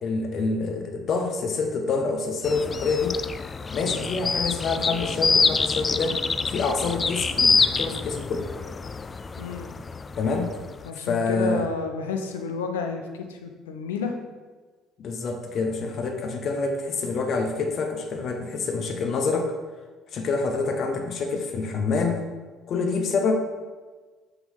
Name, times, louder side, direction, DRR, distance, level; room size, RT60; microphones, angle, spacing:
voice 1, 0.0-3.2 3.7-6.2 6.5-8.4 10.2-10.5 10.9-11.7 15.0-19.5 20.1-22.3 22.7-23.4, left 4 dB, 55° left, 5 dB, 0.9 m, -27 dB
sound 1, 2.4-10.9, left 4 dB, 30° left, 0.3 m, -26 dB
voice 2, 9.4-9.7 10.8-14.2, left 5 dB, 85° left, 5 dB, 0.6 m, -31 dB
5.8 x 3.8 x 5.4 m, 1.4 s
hypercardioid pair, 55°, 0 cm